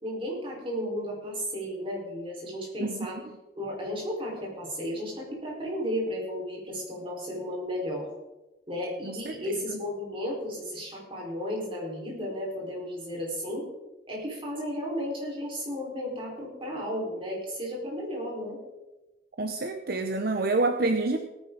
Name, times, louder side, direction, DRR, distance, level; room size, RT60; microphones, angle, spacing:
voice 1, 0.0-3.2 3.6-8.1 8.7-13.7 14.1-18.6, equal, 30° right, -3 dB, 4.7 m, -34 dB
voice 2, 2.8-3.1 9.0-9.3 9.7-9.8 19.4-21.2, right 2 dB, 60° right, 6 dB, 0.8 m, -27 dB
17.5 x 10.0 x 4.0 m, 1.1 s
head